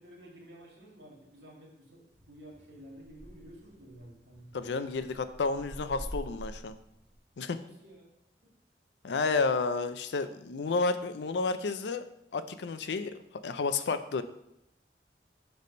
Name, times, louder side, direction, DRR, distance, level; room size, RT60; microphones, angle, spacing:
voice 1, 0.0-4.8 7.6-8.1 8.4-8.5, right 1 dB, 75° right, -2 dB, 1.9 m, -52 dB
sound 1, 2.1-7.2, equal, 45° right, 1.5 m, -47 dB
voice 2, 4.5-6.8 7.4-7.6 9.0-12.0 12.3-13.1 13.4-14.2, left 4 dB, 80° left, 11 dB, 0.5 m, -31 dB
6.7 x 3.4 x 5.1 m, 0.80 s
head